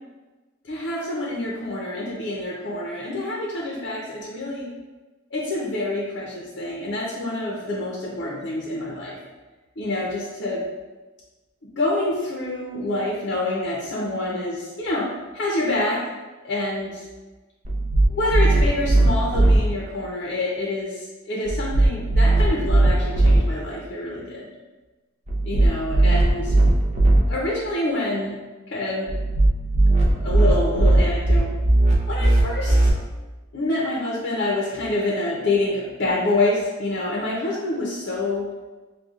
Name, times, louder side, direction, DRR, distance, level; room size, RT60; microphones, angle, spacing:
voice 1, 0.6-4.7 5.3-9.2 9.8-10.6 11.8-16.0 16.4-17.1 18.1-24.5 25.4-26.6 27.3-28.4 28.7-29.1 30.2-31.5 32.1-32.9 33.5-38.5, left 2 dB, 55° left, -4 dB, 0.6 m, -27 dB
sound 1, 17.6-19.6 21.5-23.4 25.3-27.2 29.1-32.9, right 2 dB, 35° right, 0.5 m, -18 dB
6.3 x 2.3 x 2.4 m, 1.2 s
head